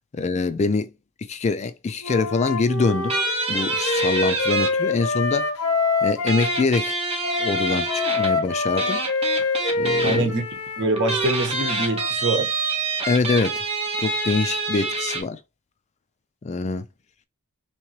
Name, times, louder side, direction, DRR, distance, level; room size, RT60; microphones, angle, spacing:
voice 1, 0.1-0.9 1.3-3.2 3.5-5.5 6.0-7.0 7.4-9.0 9.8-10.3 13.1-13.6 14.0-15.4 16.4-16.8, left 4 dB, 30° left, 0.3 m, -24 dB
Wind instrument woodwind instrument, 2.0-6.7 7.2-12.1, left 3 dB, 85° left, 1.1 m, -25 dB
sound 1, 3.1-4.7 6.3-8.3 8.8-10.2 11.0-15.2, right 3 dB, 25° right, 1.1 m, -26 dB
voice 2, 10.0-10.4 10.8-12.5, right 2 dB, 55° right, 1.3 m, -24 dB
3.6 x 3.0 x 3.0 m
head